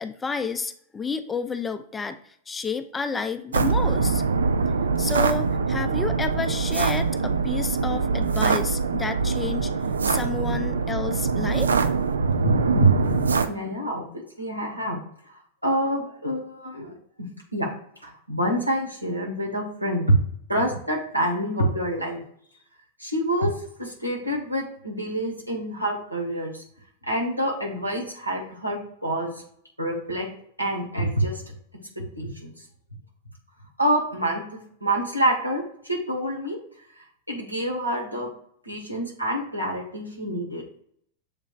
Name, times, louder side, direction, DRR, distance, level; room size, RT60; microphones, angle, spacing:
voice 1, 0.0-2.2 2.5-4.2 5.0-9.7 10.0-11.7, left 4 dB, 15° left, 9 dB, 0.4 m, -30 dB
sound 1, 3.5-13.5, right 5 dB, 70° right, 0.3 m, -24 dB
voice 2, 12.2-15.0 15.6-16.9 17.2-17.7 18.0-20.1 20.5-22.2 23.0-23.5 23.8-26.6 27.1-29.4 29.8-30.3 30.6-31.5 32.0-32.5 33.8-34.4 34.8-36.6 37.3-38.3 38.6-40.7, right 1 dB, 90° right, -2 dB, 1.2 m, -26 dB
7.2 x 3.0 x 2.4 m, 0.64 s
figure-of-eight pair, 90°, 0 cm